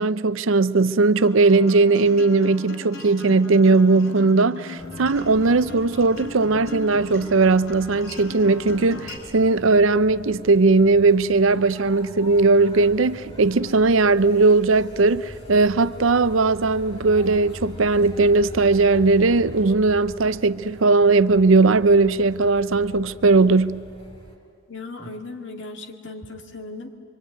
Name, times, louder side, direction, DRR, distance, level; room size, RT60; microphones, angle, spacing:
voice 1, 0.0-23.8, right 3 dB, 75° right, 0.7 m, -18 dB
Acoustic guitar, 1.2-9.2, left 2 dB, 80° left, 4.7 m, -38 dB
sound 1, 4.8-24.4, left 1 dB, 30° left, 3.9 m, -42 dB
voice 2, 24.7-26.9, left 3 dB, 60° left, 2.2 m, -37 dB
25.0 x 24.5 x 9.5 m
head